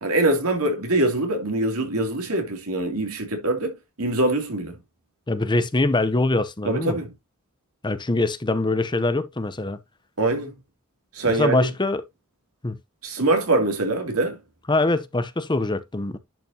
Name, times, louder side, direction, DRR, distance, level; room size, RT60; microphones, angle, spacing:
voice 1, 0.0-4.8 6.6-7.1 10.2-10.5 11.1-11.7 13.0-14.4, right 2 dB, 90° right, 2.9 m, -23 dB
voice 2, 5.3-7.0 7.8-9.8 11.2-12.0 12.6-12.8 14.7-16.2, left 2 dB, 20° left, 0.8 m, -23 dB
10.5 x 5.4 x 2.9 m
head